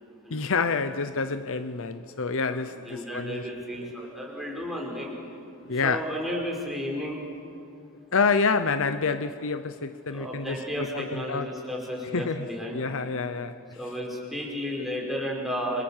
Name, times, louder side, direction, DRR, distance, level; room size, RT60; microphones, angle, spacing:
voice 1, 0.3-3.9 5.7-6.0 8.1-11.5 12.1-12.5 12.7-13.6, left 4 dB, 65° left, 12 dB, 0.8 m, -28 dB
voice 2, 2.4-5.2 5.7-7.2 10.1-12.8 13.7-15.8, equal, ahead, -2 dB, 5.1 m, -33 dB
28.0 x 26.0 x 7.4 m, 2.5 s
head